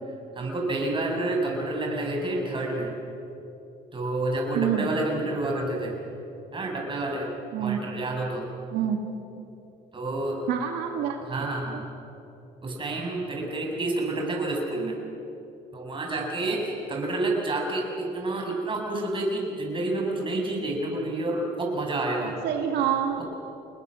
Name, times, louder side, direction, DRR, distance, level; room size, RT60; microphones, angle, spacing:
voice 1, 0.3-2.9 3.9-6.0 6.5-7.3 7.6-8.5 9.9-10.4 11.2-11.9 12.6-15.0 15.7-22.4, right 2 dB, 30° right, 0 dB, 6.2 m, -29 dB
voice 2, 4.6-4.9 7.5-7.8 8.7-9.0 10.5-11.2 11.7-11.8 22.4-23.2, right 9 dB, 85° right, 2 dB, 2.1 m, -26 dB
28.5 x 20.5 x 6.3 m, 2.9 s
cardioid pair, 110°, 17 cm